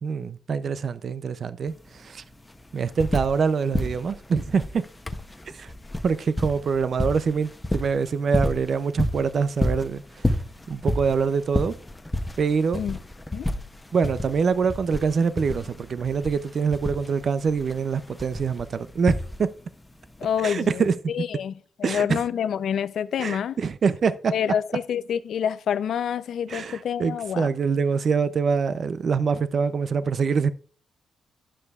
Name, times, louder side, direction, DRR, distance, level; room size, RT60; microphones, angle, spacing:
voice 1, 0.0-2.2 2.7-4.8 5.5-5.7 6.0-10.4 10.7-11.7 12.4-12.8 13.9-19.5 20.4-21.0 21.8-22.2 23.2-24.3 26.5-30.5, right 5 dB, 45° right, 0.4 m, -25 dB
sound 1, 1.7-1.8 2.0-3.5 3.7-19.7 20.8-20.9, left 1 dB, 10° left, 0.6 m, -30 dB
voice 2, 20.2-21.5 21.8-23.6 24.3-27.5, left 8 dB, 65° left, 0.5 m, -27 dB
12.0 x 9.9 x 2.4 m
wide cardioid pair, 150°, 0 cm